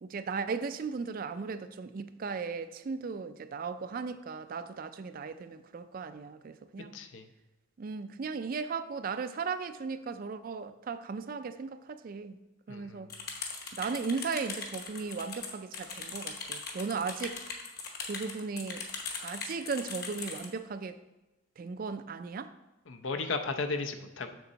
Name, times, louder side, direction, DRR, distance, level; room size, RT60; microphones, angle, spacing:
voice 1, 0.0-6.9 7.8-12.4 12.7-13.1 13.7-17.4 18.1-18.8 19.2-21.0 21.6-22.5, right 5 dB, 45° right, 0.4 m, -36 dB
voice 2, 6.9-7.3 12.7-13.0 22.9-24.3, left 3 dB, 80° left, 0.7 m, -35 dB
sound 1, 13.1-20.5, left 4 dB, 55° left, 1.1 m, -39 dB
7.0 x 6.5 x 4.0 m
head